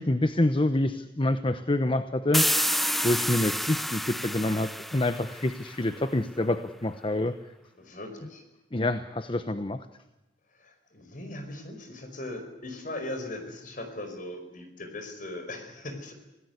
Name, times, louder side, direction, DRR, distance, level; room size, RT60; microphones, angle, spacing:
voice 1, 0.0-7.4 8.7-9.9, left 1 dB, 30° left, 11 dB, 0.9 m, -27 dB
sound 1, 2.3-5.9, equal, ahead, 0.7 m, -29 dB
voice 2, 7.8-8.4 10.5-16.1, left 1 dB, 50° left, 7 dB, 5.2 m, -39 dB
26.0 x 17.5 x 8.1 m, 1.0 s
head